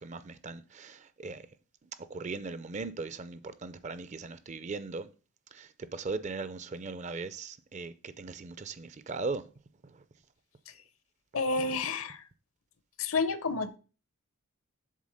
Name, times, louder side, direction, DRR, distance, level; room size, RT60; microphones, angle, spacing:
voice 1, 0.0-1.4 2.1-5.1 5.5-9.4 11.6-11.8, right 3 dB, 30° right, 0.4 m, -39 dB
voice 2, 11.3-12.2 13.0-13.8, left 3 dB, 65° left, 0.7 m, -30 dB
7.5 x 3.6 x 6.4 m
head